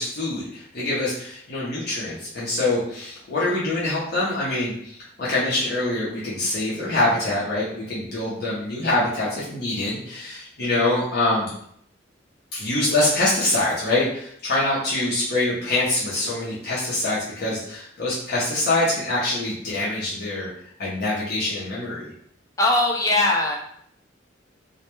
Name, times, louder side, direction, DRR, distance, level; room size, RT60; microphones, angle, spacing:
voice 1, 0.0-11.5 12.5-20.5 20.8-22.1, left 2 dB, 55° left, -7 dB, 0.6 m, -24 dB
voice 2, 22.6-23.6, left 2 dB, 15° left, 0 dB, 0.3 m, -20 dB
2.1 x 2.1 x 2.9 m, 0.67 s
head